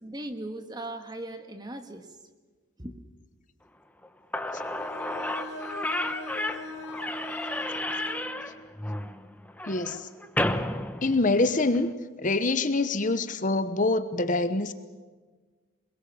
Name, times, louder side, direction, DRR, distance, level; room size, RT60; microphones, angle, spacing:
voice 1, 0.0-2.2 2.8-2.9, right 1 dB, 20° right, 7 dB, 1.6 m, -38 dB
Slam / Squeak, 4.0-4.1 4.3-11.8, left 1 dB, 5° left, 1.0 m, -32 dB
Bowed string instrument, 4.6-8.3, left 1 dB, 55° left, 4.3 m, -40 dB
voice 2, 9.7-10.1 11.0-11.9 12.2-14.7, left 2 dB, 40° left, 11 dB, 1.0 m, -25 dB
27.5 x 21.0 x 7.1 m, 1.4 s
head